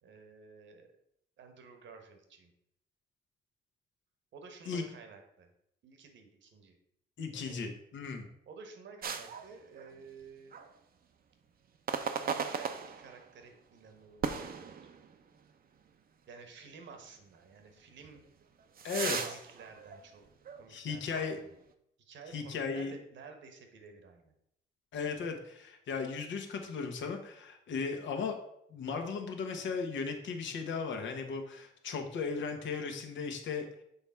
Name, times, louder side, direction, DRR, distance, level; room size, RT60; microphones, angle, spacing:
voice 1, 0.0-0.9 1.4-2.5 4.3-5.5 5.8-6.8 7.3-7.6 8.5-10.5 12.1-14.9 16.3-18.2 19.2-20.3 20.6-21.6 22.0-24.3, right 5 dB, 70° right, 5 dB, 1.3 m, -52 dB
voice 2, 7.2-8.2 18.8-19.4 20.7-21.4 22.3-22.9 24.9-28.4 28.7-33.7, left 5 dB, 70° left, 4 dB, 1.2 m, -36 dB
sound 1, 9.0-10.2 10.5-10.7 11.9-13.4 14.2-15.4 15.8-15.9 16.6-16.7 18.0-20.7 21.1-21.3, right 6 dB, 45° right, 0.7 m, -37 dB
7.0 x 3.5 x 5.6 m, 0.76 s
cardioid pair, 90°, 20 cm